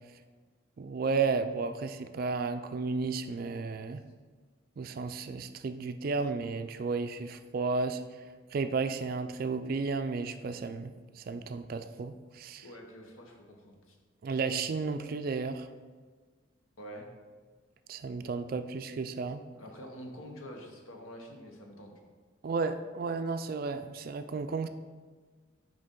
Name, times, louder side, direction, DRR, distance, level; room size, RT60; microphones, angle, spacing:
voice 1, 0.8-4.0 4.8-8.0 8.5-12.6 14.2-15.7 17.9-19.4 22.4-24.7, right 4 dB, 45° right, 9 dB, 0.3 m, -33 dB
voice 2, 12.6-14.0 16.8-17.1 19.5-21.9, equal, 85° left, 2 dB, 1.0 m, -46 dB
6.4 x 5.0 x 3.8 m, 1.5 s
head